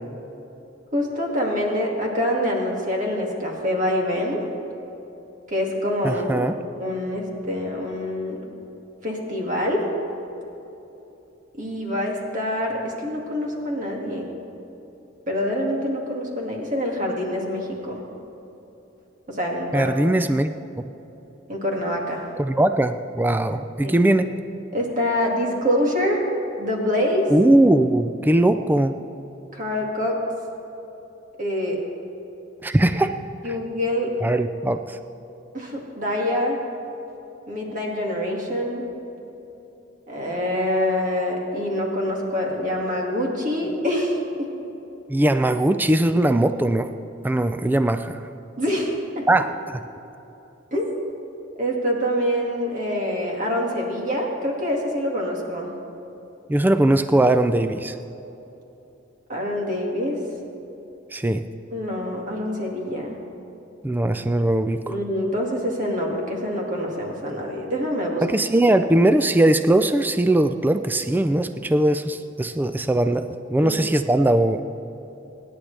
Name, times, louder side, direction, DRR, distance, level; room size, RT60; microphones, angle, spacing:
voice 1, 0.9-4.4 5.5-6.5 6.8-8.5 9.0-9.9 11.5-14.3 15.3-18.0 19.3-19.9 21.5-22.3 23.8-23.9 24.7-26.3 26.6-27.3 29.5-30.2 31.4-31.8 33.4-34.1 35.5-36.6 37.5-38.8 40.1-44.5 48.6-49.2 50.7-51.0 51.6-55.7 59.3-60.2 61.7-63.2 64.8-68.2 73.6-73.8, left 1 dB, 40° right, -1 dB, 2.2 m, -25 dB
voice 2, 6.0-6.6 19.7-20.5 22.4-24.3 27.3-29.0 32.6-33.1 33.4-33.6 34.2-35.0 45.1-46.9 47.2-48.2 49.3-49.5 56.5-58.0 61.1-61.4 63.8-65.0 68.2-74.6, right 1 dB, 10° right, 9 dB, 0.3 m, -20 dB
25.5 x 10.0 x 3.4 m, 3.0 s
head